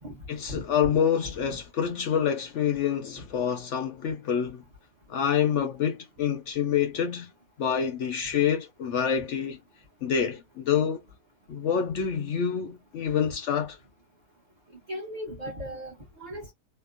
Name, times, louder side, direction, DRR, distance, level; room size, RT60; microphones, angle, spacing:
voice 1, 0.3-4.6 5.1-7.3 7.6-9.6 10.0-11.0 11.5-13.8, left 8 dB, 65° left, 0.7 m, -27 dB
voice 2, 14.9-16.5, equal, 35° right, 0.8 m, -37 dB
2.8 x 2.1 x 2.4 m
omnidirectional pair, 1.6 m